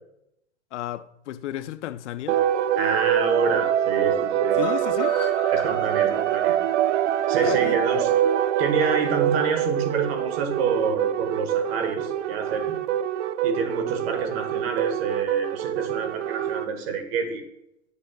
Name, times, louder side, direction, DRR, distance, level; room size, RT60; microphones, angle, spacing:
voice 1, 0.7-2.5 4.6-5.2 7.3-7.8, left 12 dB, 85° left, 0.5 m, -33 dB
sound 1, 2.3-16.7, right 10 dB, 85° right, 0.5 m, -25 dB
voice 2, 2.8-4.6 5.5-6.6 7.3-8.1 8.6-12.8 13.4-17.4, right 5 dB, 60° right, 1.3 m, -27 dB
sound 2, 4.6-8.6 8.9-9.0 9.3-9.4 9.7-9.8, left 4 dB, 5° left, 2.1 m, -39 dB
8.5 x 5.5 x 2.2 m
supercardioid pair, 150°, 34 cm